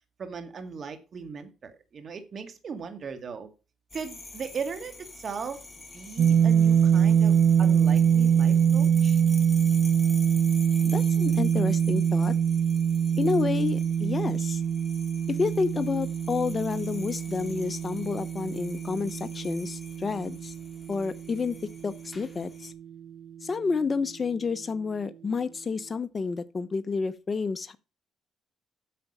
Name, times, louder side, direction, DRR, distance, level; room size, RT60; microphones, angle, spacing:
voice 1, 0.2-3.5 3.9-5.6 5.9-9.2, right 5 dB, 50° right, 1.9 m, -38 dB
sound 1, 3.9-22.7, left 2 dB, 20° left, 2.7 m, -47 dB
sound 2, 6.2-22.1, right 8 dB, 65° right, 0.4 m, -24 dB
voice 2, 10.8-12.3 13.2-14.6 15.3-20.5 20.9-21.6 21.8-22.7 23.4-27.8, left 4 dB, 35° left, 0.8 m, -29 dB
9.4 x 5.9 x 5.3 m
cardioid pair, 90°, 0 cm